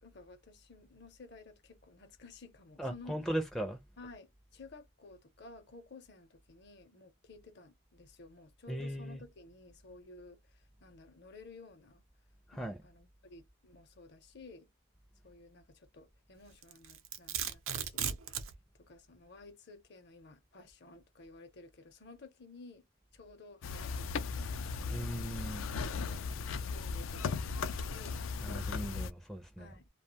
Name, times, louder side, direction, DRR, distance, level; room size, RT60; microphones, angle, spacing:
voice 1, 0.0-3.2 4.0-12.0 12.5-14.7 15.2-18.2 18.7-22.9 23.1-25.1 26.7-28.2 29.6-29.9, left 3 dB, 55° left, 0.7 m, -54 dB
voice 2, 2.8-3.8 8.7-9.2 12.5-12.8 24.9-25.7 28.4-29.8, right 1 dB, ahead, 0.4 m, -38 dB
Domestic sounds home sounds, 16.6-18.5, right 8 dB, 80° right, 0.6 m, -36 dB
sound 1, 23.6-29.1, left 5 dB, 70° left, 0.4 m, -37 dB
2.4 x 2.2 x 2.8 m
head